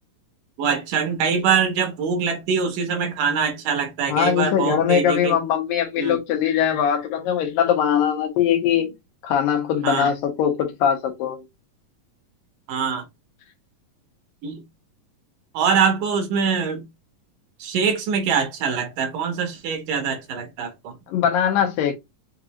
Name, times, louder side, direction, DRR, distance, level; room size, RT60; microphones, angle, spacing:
voice 1, 0.6-5.4 6.0-6.2 9.8-10.1 12.7-13.1 14.4-14.6 15.5-16.9 17.6-21.0, right 6 dB, 75° right, 2.6 m, -23 dB
voice 2, 4.1-8.9 9.2-11.4 21.1-21.9, left 9 dB, 85° left, 2.8 m, -21 dB
6.6 x 2.5 x 3.0 m
omnidirectional pair, 3.9 m